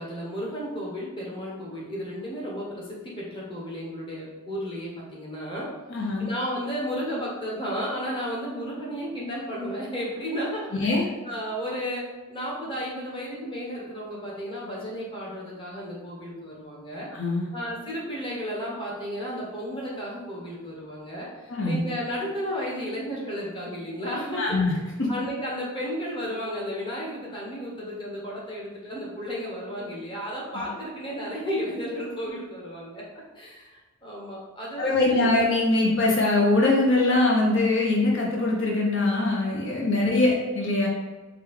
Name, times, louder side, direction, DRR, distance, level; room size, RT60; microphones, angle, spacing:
voice 1, 0.0-5.7 6.0-17.1 17.5-24.7 25.1-33.0 33.3-35.4, equal, 25° left, -4 dB, 0.9 m, -33 dB
voice 2, 5.9-6.3 10.7-11.0 17.1-17.5 21.5-21.8 24.4-24.7 34.8-40.9, left 2 dB, 60° left, -3 dB, 0.7 m, -22 dB
4.9 x 2.3 x 3.5 m, 1.2 s
head